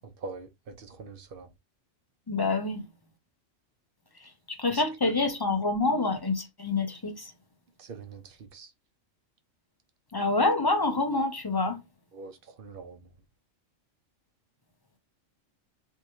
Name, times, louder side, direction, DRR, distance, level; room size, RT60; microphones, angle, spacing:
voice 1, 0.2-1.5 4.7-5.2 7.8-8.7 12.1-13.0, right 4 dB, 50° right, 0.9 m, -43 dB
voice 2, 2.3-2.8 4.5-7.3 10.1-11.8, left 3 dB, 30° left, 0.4 m, -27 dB
4.5 x 3.0 x 2.6 m
omnidirectional pair, 1.4 m